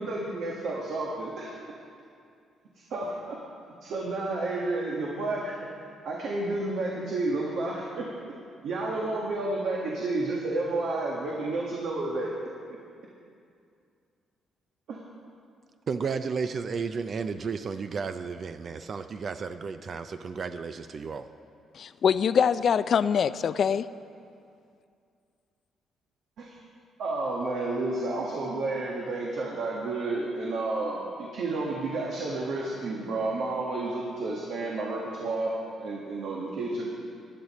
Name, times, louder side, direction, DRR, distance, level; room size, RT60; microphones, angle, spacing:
voice 1, 0.0-1.5 2.9-3.4 3.8-5.6 6.0-8.2 8.6-12.4 14.9-15.0 26.4-26.6 27.0-36.9, right 2 dB, 70° right, -2 dB, 1.4 m, -31 dB
voice 2, 15.9-21.3, right 5 dB, 50° right, 9 dB, 0.4 m, -33 dB
voice 3, 21.7-23.9, left 7 dB, 55° left, 15 dB, 0.3 m, -24 dB
13.0 x 10.5 x 4.2 m, 2.4 s
cardioid pair, 90°, 0 cm